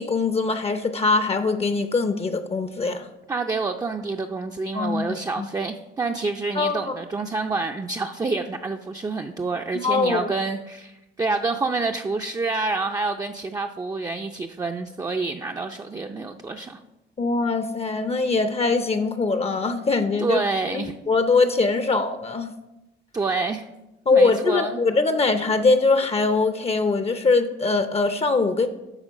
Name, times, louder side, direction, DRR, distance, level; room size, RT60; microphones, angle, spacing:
voice 1, 0.0-3.1 4.7-5.5 6.5-6.9 9.8-10.3 17.2-20.4 20.7-22.5 24.1-28.7, left 3 dB, 30° left, 9 dB, 0.6 m, -22 dB
voice 2, 3.3-16.8 20.2-20.9 23.1-23.7 24.1-24.8, right 3 dB, 20° right, 3 dB, 0.4 m, -28 dB
9.8 x 3.7 x 6.3 m, 0.98 s
cardioid pair, 90°, 20 cm